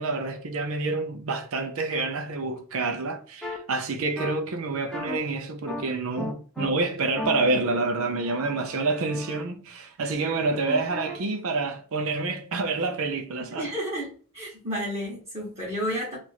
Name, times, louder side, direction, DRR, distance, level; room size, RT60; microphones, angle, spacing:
voice 1, 0.0-13.7, right 3 dB, 65° right, 0.6 m, -28 dB
sound 1, 3.4-3.6 4.2-4.3 4.9-5.2 5.7-5.8 6.2-6.7 7.2-9.4 10.7-11.2, left 1 dB, ahead, 0.6 m, -35 dB
voice 2, 13.5-16.2, equal, 30° right, 1.1 m, -31 dB
2.9 x 2.5 x 4.0 m
head